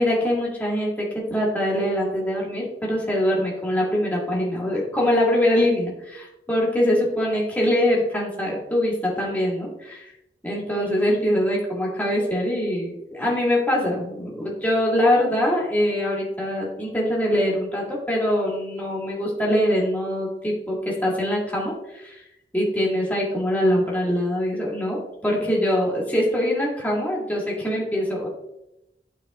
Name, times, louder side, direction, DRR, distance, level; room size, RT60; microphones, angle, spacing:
voice 1, 0.0-10.1 10.4-22.2 22.5-28.3, left 1 dB, 10° left, -4 dB, 1.8 m, -23 dB
11.5 x 4.4 x 2.4 m, 0.87 s
head